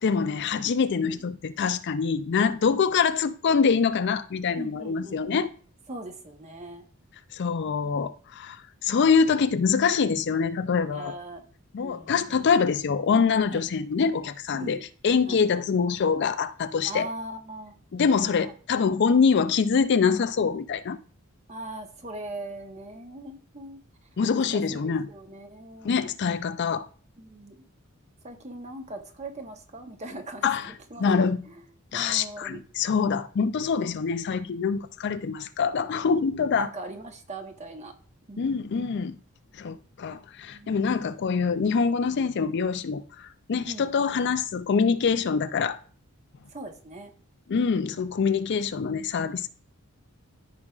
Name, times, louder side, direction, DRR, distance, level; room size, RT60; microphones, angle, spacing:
voice 1, 0.0-5.5 7.3-11.2 11.7-17.1 17.9-21.0 24.2-25.1 25.8-26.9 30.4-30.7 31.0-31.4 31.9-36.7 38.4-39.1 39.6-45.8 47.5-49.5, left 5 dB, 55° left, 0.4 m, -25 dB
voice 2, 4.6-5.4 5.9-6.8 10.9-11.5 11.8-12.5 13.5-13.6 14.6-14.8 15.3-15.4 16.8-17.7 18.1-18.5 21.5-23.8 24.3-26.0 27.2-27.6 28.2-31.3 31.9-32.6 36.2-37.9 38.3-38.5 40.5-40.9 43.6-43.9 46.5-47.1, right 2 dB, 35° right, 1.0 m, -40 dB
13.5 x 5.0 x 2.4 m
head